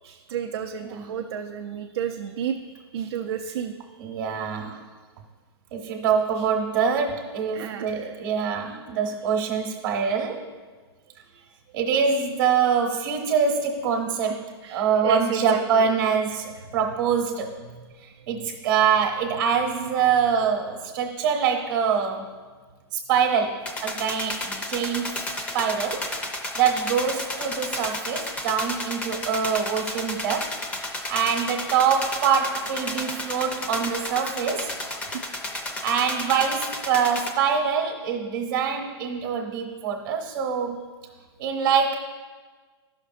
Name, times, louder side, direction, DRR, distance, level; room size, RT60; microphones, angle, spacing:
voice 1, 0.0-3.7 4.1-4.4 7.5-8.1 11.3-11.5 14.2-14.4 14.6-15.9 17.7-17.8 18.3-18.4 35.1-35.2, right 8 dB, 75° right, 3 dB, 0.5 m, -33 dB
voice 2, 4.0-4.8 5.7-10.5 11.7-17.5 18.0-22.3 22.9-26.1 26.5-34.7 35.8-40.8 41.4-42.0, right 6 dB, 45° right, 2 dB, 1.0 m, -25 dB
sound 1, 23.7-37.3, left 1 dB, 10° left, 0.5 m, -32 dB
13.0 x 5.9 x 2.5 m, 1.4 s
hypercardioid pair, 165°, 13 cm